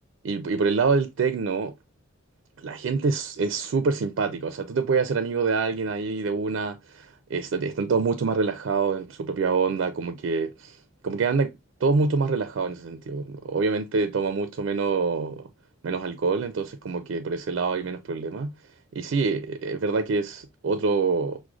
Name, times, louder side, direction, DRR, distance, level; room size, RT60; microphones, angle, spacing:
voice 1, 0.2-1.7 2.6-10.8 11.0-11.5 11.8-15.5 15.8-18.5 18.9-21.4, right 4 dB, 75° right, 0.4 m, -26 dB
6.0 x 2.1 x 2.4 m
head